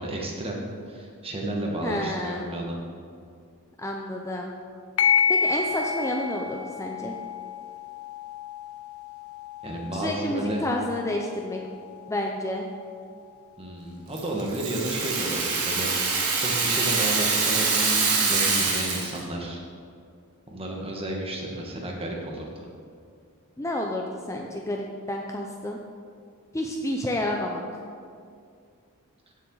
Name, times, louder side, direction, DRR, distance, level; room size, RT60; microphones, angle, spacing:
voice 1, 0.0-2.8 9.6-10.6 13.6-15.9 16.3-19.6 20.5-22.7, right 1 dB, 25° right, -1 dB, 1.7 m, -32 dB
voice 2, 1.8-2.5 3.8-4.5 5.3-7.2 9.9-11.6 12.1-12.7 23.6-25.8 26.5-27.6, left 1 dB, 15° left, 0 dB, 0.6 m, -30 dB
sound 1, 5.0-14.0, left 6 dB, 70° left, 0.7 m, -30 dB
Rattle (instrument), 14.2-19.2, right 4 dB, 80° right, 2.1 m, -25 dB
15.5 x 7.5 x 4.0 m, 2.3 s
head